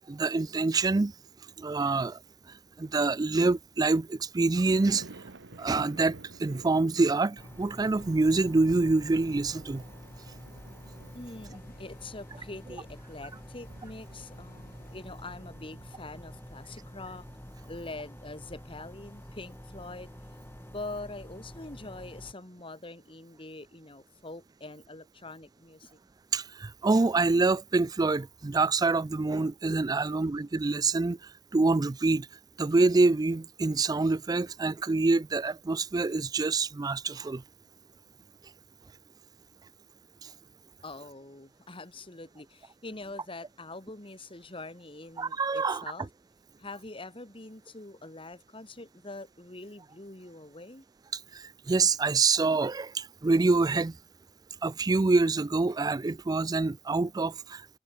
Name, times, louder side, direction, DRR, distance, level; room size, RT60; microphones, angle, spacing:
voice 1, 0.1-1.1 1.6-2.2 2.8-5.0 5.6-9.8 26.3-31.2 31.5-32.3 32.6-37.4 45.2-45.8 51.3-53.9 54.6-57.6, right 3 dB, 20° right, 0.4 m, -26 dB
sound 1, 4.6-17.4, right 2 dB, 90° right, 1.5 m, -52 dB
sound 2, 7.4-22.3, equal, 10° left, 3.4 m, -47 dB
sound 3, 9.7-15.1, left 4 dB, 55° left, 6.6 m, -66 dB
voice 2, 11.1-17.2 17.6-20.1 20.7-26.0 40.8-46.1 46.6-50.9, left 2 dB, 30° left, 2.5 m, -44 dB
head